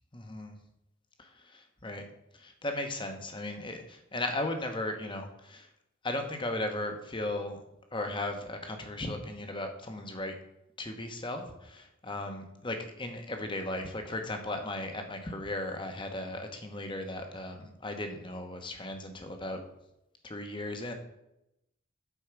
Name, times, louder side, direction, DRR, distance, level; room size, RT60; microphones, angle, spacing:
voice 1, 0.1-0.6 1.2-2.1 2.3-5.7 6.0-7.6 7.9-10.4 10.8-19.6 20.2-20.9, left 1 dB, 25° left, 5 dB, 1.0 m, -36 dB
8.3 x 4.7 x 6.0 m, 0.86 s
head